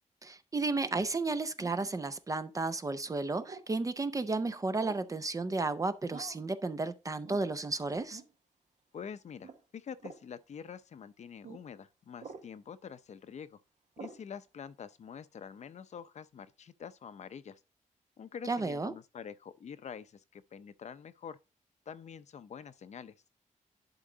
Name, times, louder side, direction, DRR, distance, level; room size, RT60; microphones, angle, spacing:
voice 1, 0.2-8.2 18.4-18.9, right 3 dB, 25° right, 0.5 m, -33 dB
sound 1, 1.6-1.9 3.4-3.7 4.8-5.1 6.1-6.5 7.2-7.5 8.1-8.3 9.4-9.6 10.0-10.3 11.4-11.6 12.2-12.5 14.0-14.2, right 5 dB, 60° right, 1.1 m, -47 dB
voice 2, 8.9-13.6 14.0-17.6 18.2-21.4 21.9-23.1, left 7 dB, 60° left, 0.6 m, -46 dB
11.0 x 3.8 x 3.9 m
wide cardioid pair, 150°, 13 cm